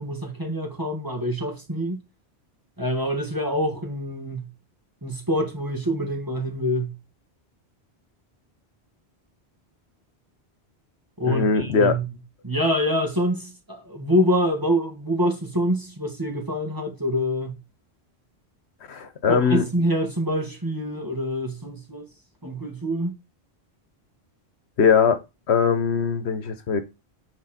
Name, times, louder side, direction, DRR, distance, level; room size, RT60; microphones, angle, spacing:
voice 1, 0.0-2.0 2.8-4.5 5.0-6.9 11.2-12.1 12.4-17.6 19.3-22.1 22.4-23.2, equal, 20° right, 1.5 m, -26 dB
voice 2, 11.2-12.0 18.9-19.6 24.8-25.2 25.5-26.8, left 6 dB, 80° left, 1.3 m, -20 dB
8.4 x 4.4 x 4.2 m
omnidirectional pair, 1.1 m